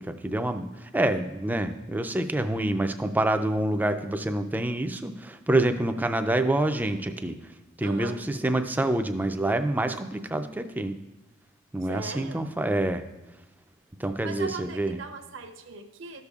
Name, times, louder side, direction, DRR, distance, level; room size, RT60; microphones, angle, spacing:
voice 1, 0.0-11.0 11.7-13.0 14.0-15.0, right 1 dB, 10° right, 8 dB, 0.3 m, -27 dB
voice 2, 7.8-8.2 11.9-12.4 14.2-16.3, right 4 dB, 65° right, 6 dB, 0.7 m, -39 dB
13.0 x 6.7 x 2.4 m, 1.0 s
head